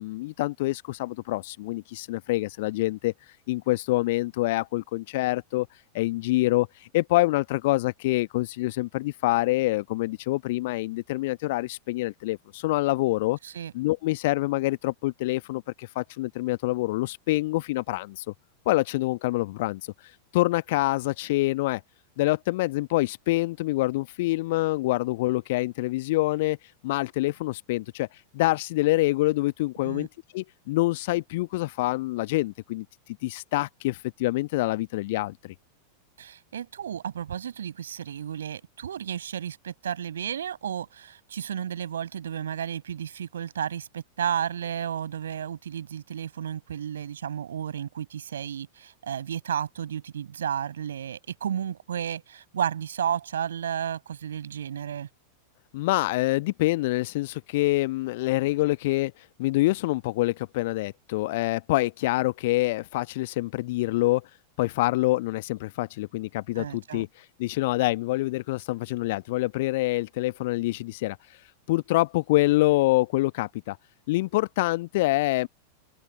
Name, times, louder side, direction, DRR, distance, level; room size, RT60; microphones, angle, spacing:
voice 1, 0.0-3.1 3.5-5.7 5.9-6.7 6.9-13.4 13.7-18.3 18.6-19.8 20.3-21.8 22.2-26.6 26.8-28.1 28.3-30.1 30.3-32.8 33.2-35.5 55.7-59.1 59.4-64.3 64.6-67.1 67.4-71.2 71.7-73.8 74.1-75.5, left 19 dB, 50° left, 1.2 m, -26 dB
voice 2, 36.2-55.1 66.6-67.0, right 9 dB, 65° right, 5.9 m, -32 dB
open air
figure-of-eight pair, 90°, 0 cm